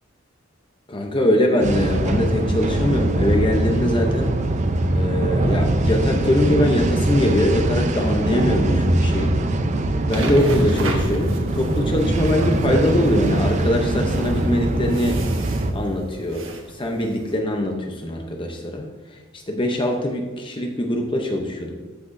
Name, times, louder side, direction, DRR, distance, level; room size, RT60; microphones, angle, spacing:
voice 1, 0.9-4.4 4.9-9.4 10.1-15.2 15.7-18.8 19.3-21.8, left 1 dB, 25° left, 2 dB, 0.7 m, -22 dB
sound 1, 1.6-15.7, right 1 dB, 35° right, 0.5 m, -22 dB
sound 2, 10.1-17.3, right 2 dB, 80° right, 1.3 m, -32 dB
13.5 x 5.9 x 2.6 m, 1.4 s
head